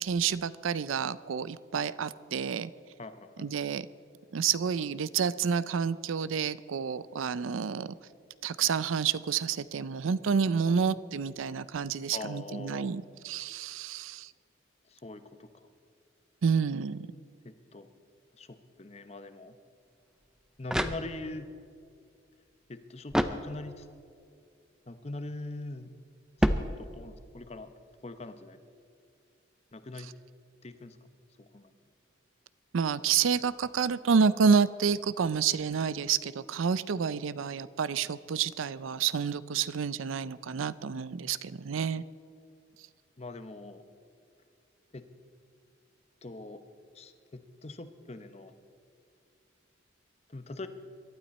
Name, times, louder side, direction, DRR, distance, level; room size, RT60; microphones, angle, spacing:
voice 1, 0.0-2.7 3.4-3.9 4.3-7.9 8.4-14.3 16.4-17.1 32.7-42.0, right 6 dB, 90° right, 17 dB, 0.5 m, -29 dB
voice 2, 3.0-3.5 10.7-10.8 12.1-13.0 14.9-15.7 17.4-17.9 18.3-19.6 20.6-21.5 22.7-23.9 24.9-25.9 26.4-27.7 28.0-28.6 29.7-30.1 30.6-31.0 31.4-31.7 36.9-37.2 43.2-43.8 44.9-45.0 46.2-46.6 46.9-48.5 50.3-50.7, left 2 dB, 30° left, 10 dB, 0.8 m, -43 dB
Intestine slap drop, 20.2-21.5 23.1-24.0 26.4-27.3, equal, 5° right, 0.5 m, -30 dB
23.0 x 12.0 x 4.2 m, 2.4 s
head